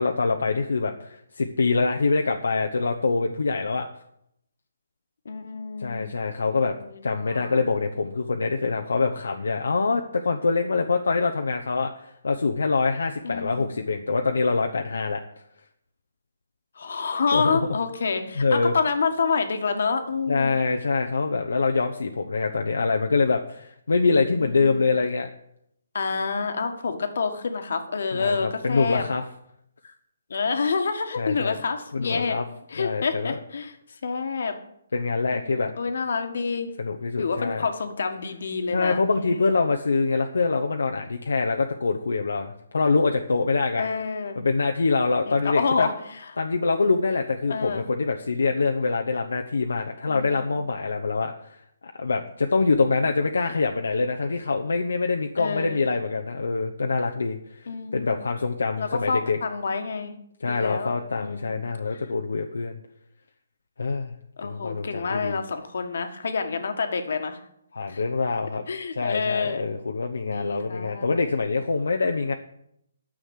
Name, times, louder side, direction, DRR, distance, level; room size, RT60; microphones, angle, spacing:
voice 1, 0.0-3.9 5.8-6.7 7.0-15.2 17.3-17.6 18.4-18.7 20.3-25.3 28.1-29.2 29.8-29.9 31.2-31.5 31.9-32.4 32.8-33.3 34.9-35.7 36.8-37.7 38.7-43.9 44.4-45.9 46.4-51.6 52.0-59.4 60.4-62.8 63.8-64.1 64.4-65.4 67.7-68.6 68.9-72.3, left 4 dB, 80° left, 3 dB, 0.9 m, -25 dB
voice 2, 5.2-6.1 6.8-7.6 13.2-13.7 16.7-20.6 24.4-24.9 25.9-29.0 30.3-32.4 32.7-33.7 34.0-34.5 35.3-36.7 37.2-39.5 43.8-44.4 45.3-46.3 47.5-47.9 50.1-50.6 55.4-55.8 57.7-58.2 58.8-60.1 60.4-61.6 61.9-62.0 64.4-67.4 67.9-68.0 68.7-69.7 70.2-71.2, left 5 dB, 65° left, 7 dB, 1.6 m, -28 dB
9.7 x 6.4 x 8.2 m, 0.75 s
hypercardioid pair, 155°, 0 cm